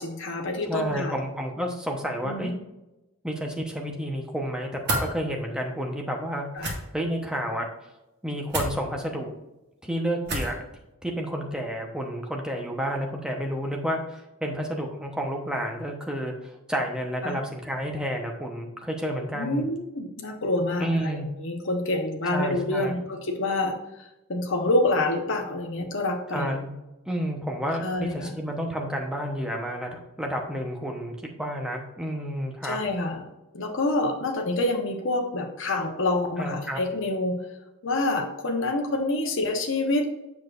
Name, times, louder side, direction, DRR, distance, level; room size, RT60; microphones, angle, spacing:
voice 1, 0.0-1.2 2.2-2.5 6.5-6.7 17.2-17.4 19.3-26.5 27.8-28.3 32.6-33.2 33.5-37.4 37.8-40.1, left 2 dB, 55° left, 2 dB, 1.0 m, -27 dB
voice 2, 0.7-2.6 3.2-7.7 8.2-9.3 9.8-10.6 11.0-19.7 20.8-21.3 22.3-23.0 26.3-26.7 27.1-32.8 36.4-36.8, equal, 5° right, 1 dB, 0.9 m, -30 dB
sound 1, 4.8-5.1 6.6-6.8 8.5-8.7 10.2-10.6, right 1 dB, 50° right, 1.6 m, -28 dB
7.4 x 6.2 x 2.5 m, 0.97 s
head